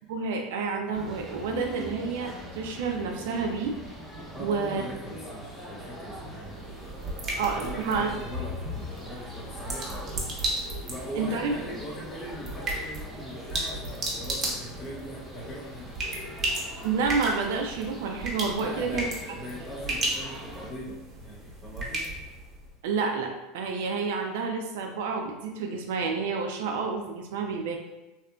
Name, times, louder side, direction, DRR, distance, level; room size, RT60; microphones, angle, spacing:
voice 1, 0.1-3.7 4.4-4.8 7.4-8.1 11.1-11.5 16.8-19.1 22.8-27.8, right 5 dB, 80° right, 3 dB, 0.4 m, -29 dB
sound 1, 0.9-20.7, equal, 5° right, 0.8 m, -42 dB
voice 2, 4.3-7.0 7.4-16.0 18.6-22.1, equal, 25° left, -4 dB, 0.6 m, -41 dB
sound 2, 6.3-22.7, right 1 dB, 35° right, 0.8 m, -35 dB
2.8 x 2.4 x 2.2 m, 1.0 s
supercardioid pair, 105°, 0 cm